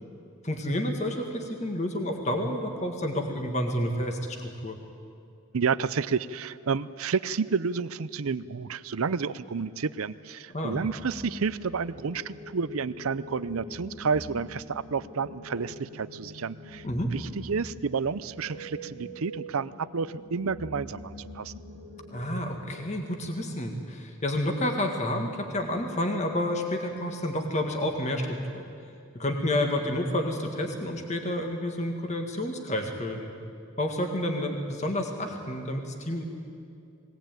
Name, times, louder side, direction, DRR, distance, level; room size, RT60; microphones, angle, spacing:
voice 1, 0.4-4.8 10.5-10.8 16.8-17.1 22.1-28.6 29.1-33.3 33.8-36.2, left 1 dB, 30° left, 3 dB, 1.8 m, -30 dB
voice 2, 5.5-16.8 17.1-21.5, right 5 dB, 80° right, 16 dB, 0.6 m, -30 dB
sound 1, 10.5-23.3, left 1 dB, 55° left, 3.0 m, -44 dB
21.0 x 18.0 x 9.1 m, 2.5 s
head